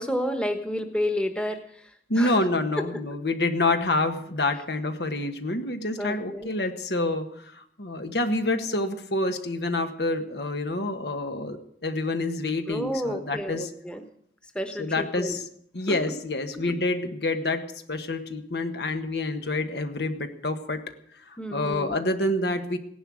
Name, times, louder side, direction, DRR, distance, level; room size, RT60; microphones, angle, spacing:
voice 1, 0.0-2.5 2.8-2.9 6.0-6.5 12.7-14.0 14.5-15.4 15.9-16.0 16.5-16.6 21.4-22.0, equal, 5° left, 5 dB, 1.1 m, -30 dB
voice 2, 2.1-11.6 11.8-13.7 14.8-15.5 15.7-20.8 21.5-22.8, left 2 dB, 75° left, 7 dB, 1.5 m, -27 dB
17.0 x 11.0 x 6.3 m, 0.68 s
head